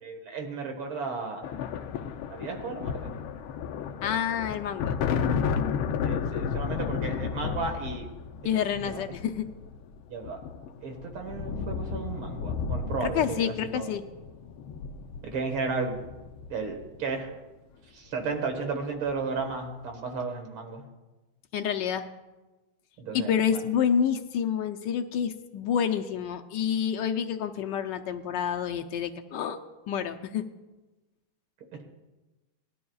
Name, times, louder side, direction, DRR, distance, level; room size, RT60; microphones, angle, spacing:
voice 1, 0.0-1.5 2.3-3.1 6.0-8.1 8.8-9.0 10.1-10.4 10.8-13.9 15.2-16.1 16.5-17.3 17.9-20.8 23.0-23.6, right 4 dB, 75° right, 4 dB, 2.3 m, -34 dB
sound 1, 1.4-17.2 18.3-18.6 18.9-19.6, left 6 dB, 85° left, 1.6 m, -33 dB
voice 2, 4.0-5.0 8.4-9.5 13.0-14.0 21.5-22.0 23.1-29.6 29.9-30.4, left 8 dB, 70° left, 6 dB, 1.1 m, -28 dB
19.5 x 12.0 x 2.3 m, 1.1 s
omnidirectional pair, 2.3 m